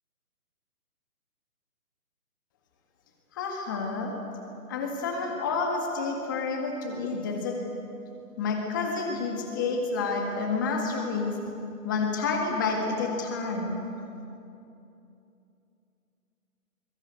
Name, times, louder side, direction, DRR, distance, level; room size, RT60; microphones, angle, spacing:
voice 1, 3.3-4.1 4.7-7.6 8.4-11.4 11.8-13.8, left 4 dB, 15° left, 1 dB, 1.9 m, -29 dB
28.5 x 22.0 x 8.2 m, 2.7 s
hypercardioid pair, 170°, 45 cm